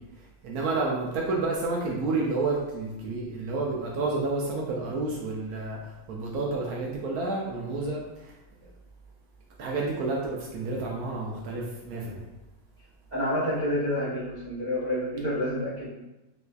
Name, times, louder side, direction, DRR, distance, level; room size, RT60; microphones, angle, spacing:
voice 1, 0.4-5.8 6.1-8.3 8.6-8.7 9.6-12.2, right 3 dB, 80° right, -2 dB, 1.1 m, -30 dB
voice 2, 13.1-15.9, left 1 dB, 35° right, -8 dB, 0.8 m, -28 dB
4.1 x 2.5 x 2.2 m, 1.0 s
omnidirectional pair, 1.5 m